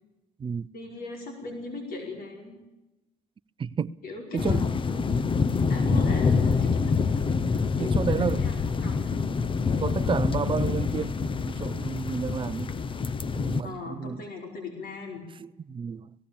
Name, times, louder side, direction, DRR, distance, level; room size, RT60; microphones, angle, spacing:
voice 1, 0.7-2.6 4.0-4.6 4.8-5.1 5.4-6.9 7.8-9.1 13.6-15.2, left 3 dB, 60° left, 5.1 m, -39 dB
voice 2, 3.6-3.9 4.3-4.6 5.8-6.2 7.8-8.5 9.8-12.7 13.3-14.3 15.4-16.1, right 6 dB, 30° right, 0.6 m, -31 dB
sound 1, 4.4-13.6, left 5 dB, 30° left, 0.8 m, -26 dB
18.0 x 16.5 x 8.7 m
cardioid pair, 110°, 17 cm